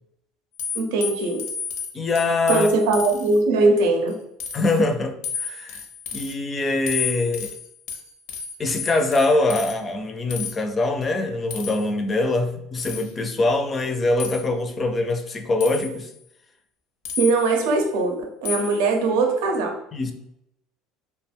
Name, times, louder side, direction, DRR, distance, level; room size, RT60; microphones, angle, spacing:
sound 1, 0.6-3.4 3.8-4.1 4.4-4.8 5.2-6.3 6.9-9.7 10.3-10.5 11.5-11.9 12.8-13.1 14.2-14.4 15.6-16.1 17.0-17.6 18.5-18.8, left 7 dB, 75° left, 0.6 m, -32 dB
voice 1, 0.7-1.4 2.5-4.1 17.2-19.7, right 3 dB, 80° right, 3 dB, 0.6 m, -20 dB
voice 2, 1.9-2.7 4.5-5.8 6.1-7.5 8.6-16.1 19.9-20.1, left 2 dB, 30° left, 5 dB, 0.4 m, -23 dB
2.4 x 2.1 x 3.4 m, 0.78 s
supercardioid pair, 100°, 0 cm